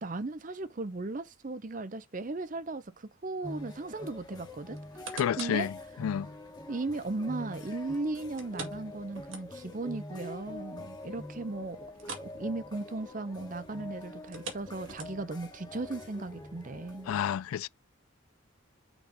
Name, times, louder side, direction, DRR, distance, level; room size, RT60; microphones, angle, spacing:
voice 1, 0.0-4.8 5.4-5.7 6.7-11.8 12.2-17.1, right 2 dB, 40° right, 0.6 m, -36 dB
sound 1, 3.4-17.2, left 1 dB, 20° left, 1.3 m, -45 dB
sound 2, 4.7-5.7 6.2-6.3 8.4-9.8 10.2-10.3 10.7-10.8 11.9-12.4 12.6-12.9 14.2-15.4 16.1-16.2, right 4 dB, 70° right, 2.2 m, -44 dB
voice 2, 5.1-5.7 6.0-6.3 17.1-17.7, left 9 dB, 90° left, 0.3 m, -30 dB
6.0 x 3.8 x 5.1 m
head